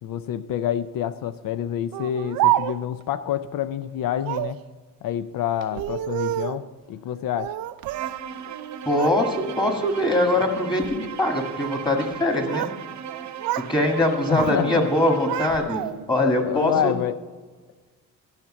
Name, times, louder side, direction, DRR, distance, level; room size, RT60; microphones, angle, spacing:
voice 1, 0.0-4.6 5.0-7.6 14.3-14.9 15.6-15.7 16.2-17.2, left 10 dB, 75° left, 11 dB, 0.5 m, -27 dB
Speech, 1.9-3.0 4.2-4.6 5.6-6.7 7.4-8.2 8.5-9.2 9.6-10.0 10.7-11.0 12.1-12.8 13.1-13.7 14.0-14.6 14.9-16.2, right 14 dB, 90° right, 0.5 m, -28 dB
Bowed string instrument, 7.9-15.8, right 9 dB, 60° right, 0.8 m, -37 dB
voice 2, 8.8-12.7 13.5-16.9, left 1 dB, 15° left, 2 dB, 1.8 m, -22 dB
12.5 x 5.9 x 8.5 m, 1.4 s
cardioid pair, 135°, 34 cm